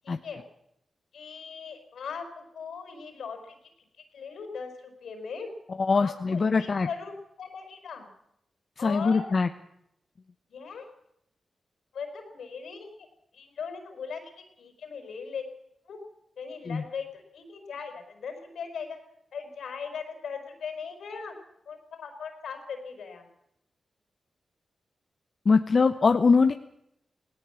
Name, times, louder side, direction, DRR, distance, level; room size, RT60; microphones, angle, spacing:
voice 1, 0.0-0.4 1.1-3.6 4.1-5.5 5.9-8.1 8.8-9.4 10.5-10.9 11.9-13.1 13.3-14.3 14.6-15.4 15.9-16.0 16.4-19.0 19.3-21.3 21.7-23.3, left 6 dB, 85° left, 6 dB, 5.2 m, -39 dB
voice 2, 5.8-6.9 8.8-9.5 16.7-16.8 25.4-26.5, left 4 dB, 55° left, 8 dB, 1.1 m, -22 dB
18.0 x 18.0 x 8.4 m, 0.76 s
cardioid pair, 50°, 0 cm